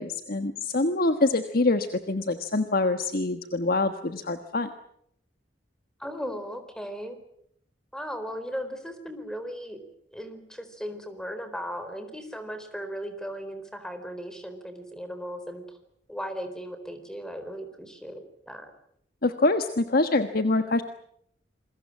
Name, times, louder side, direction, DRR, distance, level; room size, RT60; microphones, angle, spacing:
voice 1, 0.0-4.7 19.2-20.8, left 2 dB, 55° left, 8 dB, 1.4 m, -25 dB
voice 2, 6.0-7.2 7.9-9.8 10.1-15.8 16.1-18.7, equal, 5° left, 9 dB, 4.2 m, -37 dB
28.0 x 22.0 x 7.5 m, 0.69 s
head